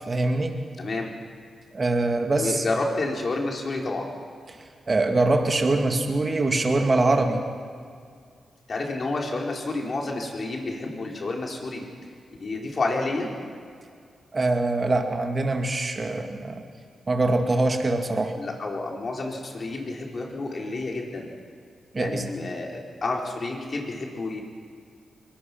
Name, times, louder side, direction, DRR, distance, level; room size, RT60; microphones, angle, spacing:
voice 1, 0.1-0.6 1.7-2.6 4.9-7.4 14.3-16.6 17.1-18.4 21.9-22.3, right 2 dB, 40° right, 4 dB, 2.2 m, -23 dB
voice 2, 0.8-1.1 2.3-4.1 8.7-11.8 12.4-13.3 18.4-21.3 22.0-22.7 23.0-24.4, left 2 dB, 50° left, 0 dB, 4.2 m, -29 dB
23.0 x 20.0 x 6.1 m, 2.2 s
cardioid pair, 65°, 0 cm